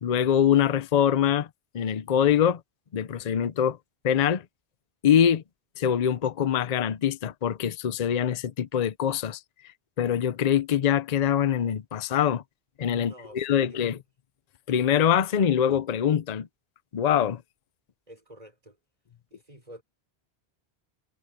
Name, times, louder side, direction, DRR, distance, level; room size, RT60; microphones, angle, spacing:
voice 1, 0.0-1.5 1.7-2.6 2.9-3.8 4.0-4.4 5.0-5.4 5.8-9.4 10.0-12.4 12.8-14.0 14.7-16.5 16.9-17.4, left 9 dB, 45° left, 0.7 m, -24 dB
voice 2, 13.0-14.0 18.1-18.8 19.3-19.8, right 1 dB, 40° right, 4.9 m, -48 dB
omnidirectional pair, 1.1 m